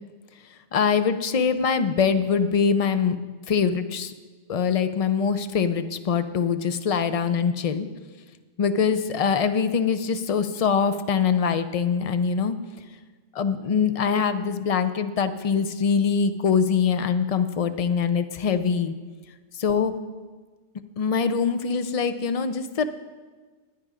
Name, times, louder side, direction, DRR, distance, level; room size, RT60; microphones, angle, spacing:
voice 1, 0.7-3.2 3.5-4.1 4.5-7.9 8.6-12.6 13.3-18.9 19.6-19.9 21.0-22.9, left 6 dB, 50° left, 10 dB, 0.4 m, -23 dB
10.5 x 9.6 x 5.0 m, 1.4 s
omnidirectional pair, 1.2 m